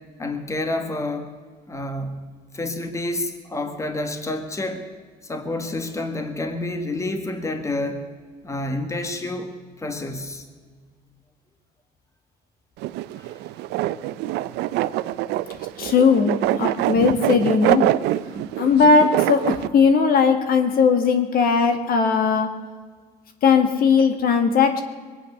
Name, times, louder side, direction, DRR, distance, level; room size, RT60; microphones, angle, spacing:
voice 1, 0.2-1.3 1.7-4.8 5.2-8.0 8.4-9.5 9.8-10.5 13.2-13.3, left 2 dB, 15° left, 7 dB, 1.7 m, -29 dB
sound 1, 12.8-19.7, right 15 dB, 90° right, 0.6 m, -24 dB
voice 2, 15.8-17.9 18.3-22.5 23.4-24.8, left 5 dB, 60° left, 7 dB, 1.9 m, -18 dB
22.0 x 9.2 x 6.6 m, 1.5 s
cardioid pair, 110°, 17 cm